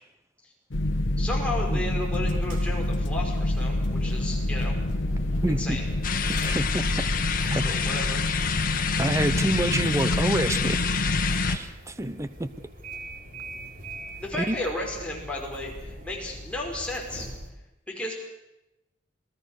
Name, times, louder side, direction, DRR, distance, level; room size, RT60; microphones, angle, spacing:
sound 1, 0.7-11.6, left 1 dB, 80° left, 1.2 m, -27 dB
voice 1, 1.2-4.8 5.5-5.9 7.6-8.2 14.2-17.3 17.9-18.1, left 1 dB, 5° left, -2 dB, 5.2 m, -33 dB
sound 2, 1.6-17.5, right 1 dB, 50° right, 4.1 m, -44 dB
voice 2, 5.4-5.8 6.4-6.8 7.4-7.6 9.0-10.8 11.5-12.5 14.4-14.5, right 1 dB, 15° right, 13 dB, 0.9 m, -27 dB
sound 3, 6.0-11.6, left 8 dB, 50° left, 1.5 m, -29 dB
27.0 x 17.5 x 6.7 m, 0.92 s
head